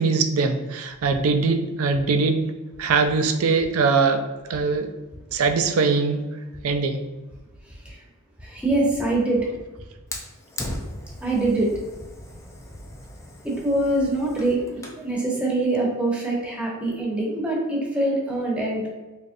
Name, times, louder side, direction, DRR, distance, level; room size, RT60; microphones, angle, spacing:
voice 1, 0.0-2.5 2.8-4.2 4.5-4.9 5.3-6.3 6.6-7.0, right 4 dB, 70° right, 7 dB, 0.4 m, -21 dB
voice 2, 8.4-9.5 11.2-11.8 13.4-14.6 15.0-18.9, right 2 dB, 5° right, -3 dB, 0.9 m, -24 dB
Fire, 10.1-15.1, left 1 dB, 15° left, 0.4 m, -38 dB
3.9 x 3.0 x 2.6 m, 1.1 s
head